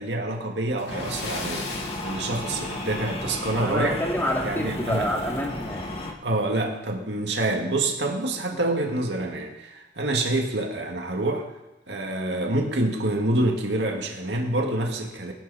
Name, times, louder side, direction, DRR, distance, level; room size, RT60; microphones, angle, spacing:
voice 1, 0.0-4.0 4.4-5.1 6.2-11.5 11.9-15.3, right 2 dB, 80° right, 1 dB, 2.0 m, -27 dB
Splash splatter, 0.7-3.1 3.4-3.6 4.0-4.1 5.6-5.7 6.0-6.1 6.7-7.0, left 4 dB, 90° left, 4.9 m, -38 dB
sound 1, 0.9-6.1, left 1 dB, 35° left, 2.0 m, -33 dB
voice 2, 3.5-5.8, equal, 10° left, -1 dB, 2.7 m, -27 dB
20.0 x 12.0 x 4.2 m, 0.94 s
head